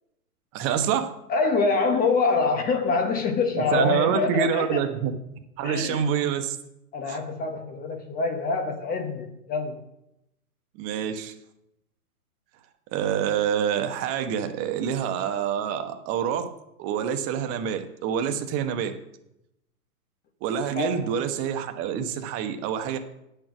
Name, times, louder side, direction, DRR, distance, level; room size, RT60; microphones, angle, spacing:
voice 1, 0.5-1.1 3.6-5.1 5.6-6.6 7.0-7.2 10.8-11.3 12.9-16.5 16.8-18.9 20.4-23.0, right 8 dB, 30° right, 1.2 m, -26 dB
voice 2, 1.3-4.8 5.6-6.0 6.9-9.8 20.7-21.1, left 4 dB, 20° left, 1.1 m, -25 dB
10.5 x 6.8 x 6.0 m
hypercardioid pair, 120°, 46 cm